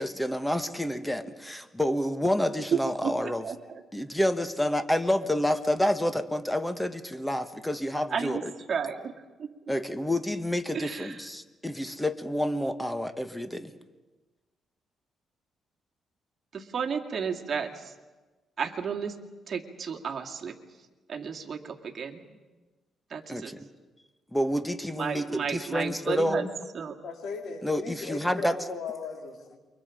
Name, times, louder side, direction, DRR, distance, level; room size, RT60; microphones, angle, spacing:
voice 1, 0.0-3.4 3.9-8.5 9.7-13.7 23.3-23.7 24.3-26.5 27.6-28.5, left 1 dB, 5° left, 10 dB, 1.5 m, -29 dB
voice 2, 2.7-3.8 8.1-9.1 9.4-9.5 10.7-11.2 16.5-17.9 18.6-19.2 19.5-20.6 21.1-22.4 23.1-23.5 24.9-26.5 26.7-27.0, right 6 dB, 45° right, 2 dB, 2.4 m, -33 dB
voice 3, 27.0-29.6, left 4 dB, 65° left, 2 dB, 4.1 m, -37 dB
28.5 x 24.0 x 5.2 m, 1.2 s
cardioid pair, 90°, 0 cm